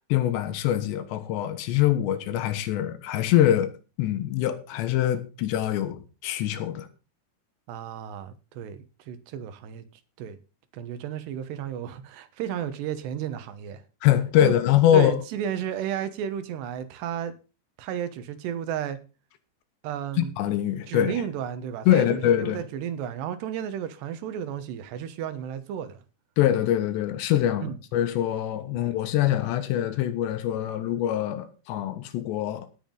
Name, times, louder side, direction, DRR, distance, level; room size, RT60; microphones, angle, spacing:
voice 1, 0.1-3.7 4.0-6.9 14.0-15.1 20.2-21.2 21.9-22.6 26.4-32.7, left 11 dB, 80° left, 3.4 m, -24 dB
voice 2, 7.7-9.8 10.2-10.4 10.7-13.8 14.4-14.5 14.9-17.3 17.8-19.0 19.8-20.3 20.9-26.0 27.6-27.8, right 9 dB, 75° right, 3.2 m, -33 dB
18.0 x 7.2 x 3.9 m
omnidirectional pair, 5.0 m